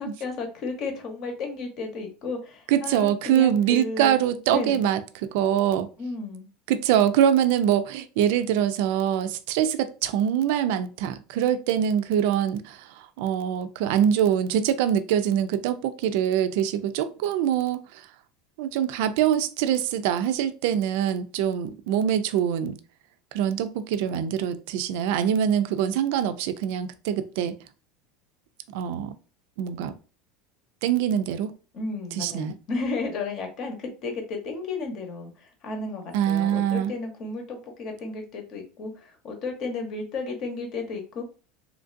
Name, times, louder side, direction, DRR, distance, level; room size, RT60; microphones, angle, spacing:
voice 1, 0.0-4.1 4.5-4.9 6.0-6.5 31.7-41.2, left 3 dB, 45° left, 0.9 m, -33 dB
voice 2, 2.7-5.9 6.7-17.8 18.6-22.8 23.3-27.6 28.7-29.1 29.6-29.9 30.8-31.5 32.2-32.6 36.1-36.9, right 9 dB, 70° right, 0.4 m, -24 dB
3.1 x 2.5 x 2.5 m
supercardioid pair, 135°, 0 cm